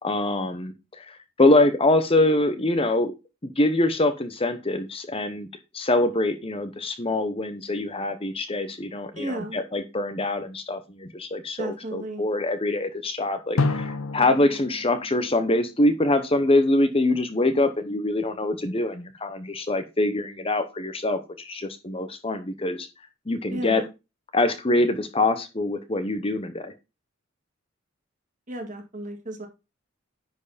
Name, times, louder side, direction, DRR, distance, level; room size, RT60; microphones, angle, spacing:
voice 1, 0.0-3.1 3.4-5.5 5.7-22.9 23.3-23.8 24.3-26.7, left 2 dB, 25° left, 9 dB, 1.0 m, -24 dB
voice 2, 9.2-9.6 11.6-12.2 23.5-23.9 28.5-29.5, right 1 dB, 35° right, 3 dB, 2.0 m, -33 dB
Drum, 13.6-16.3, left 3 dB, 80° left, 0.7 m, -30 dB
10.0 x 4.8 x 4.1 m, 0.26 s
head